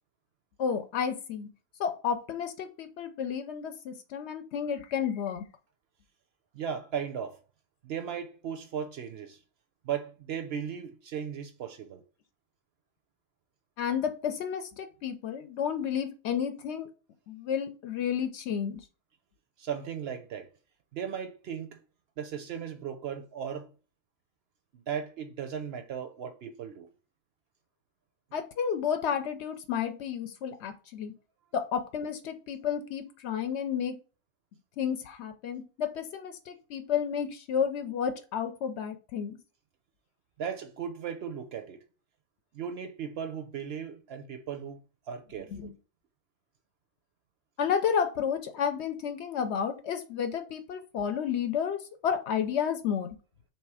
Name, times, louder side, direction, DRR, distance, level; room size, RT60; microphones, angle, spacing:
voice 1, 0.6-1.5 1.8-5.4 13.8-16.9 17.3-18.8 28.3-31.1 31.5-34.0 34.8-39.4 45.5-45.7 47.6-53.1, left 7 dB, 65° left, 0.8 m, -31 dB
voice 2, 6.5-7.4 7.8-9.4 9.8-12.0 19.6-20.5 20.9-21.8 22.2-23.7 24.7-26.9 40.4-41.8 42.5-44.8 45.1-45.7, right 8 dB, 65° right, 0.7 m, -36 dB
3.2 x 3.0 x 4.7 m
omnidirectional pair, 1.3 m